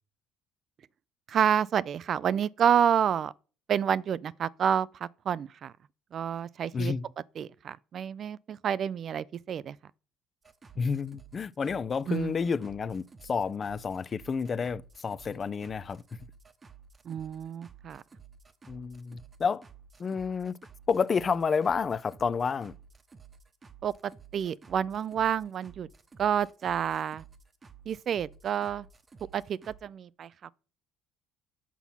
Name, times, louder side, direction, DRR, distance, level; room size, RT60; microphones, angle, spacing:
voice 1, 1.3-3.3 3.7-5.7 6.1-6.9 7.4-9.8 12.1-12.3 17.1-18.0 23.8-25.9 26.2-27.2 27.9-28.9 29.3-30.5, right 8 dB, 50° right, 0.3 m, -29 dB
voice 2, 6.7-7.1 10.8-16.0 18.7-19.6 20.0-20.5 20.9-22.7, left 5 dB, 35° left, 0.4 m, -30 dB
sound 1, 10.4-29.8, right 6 dB, 30° right, 0.9 m, -54 dB
6.0 x 5.8 x 5.7 m
hypercardioid pair, 60°, 0 cm